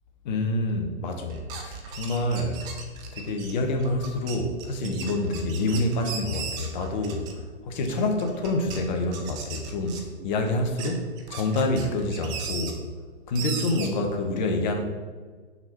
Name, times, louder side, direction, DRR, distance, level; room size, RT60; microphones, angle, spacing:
voice 1, 0.2-2.6 3.1-7.2 7.6-12.8 13.3-14.8, left 2 dB, 45° left, 4 dB, 1.0 m, -27 dB
sound 1, 1.3-7.5 7.8-8.8 9.1-10.3 10.6-12.7 13.4-13.9, right 6 dB, 15° right, 0.4 m, -37 dB
5.8 x 3.8 x 4.4 m, 1.5 s
hypercardioid pair, 125°, 32 cm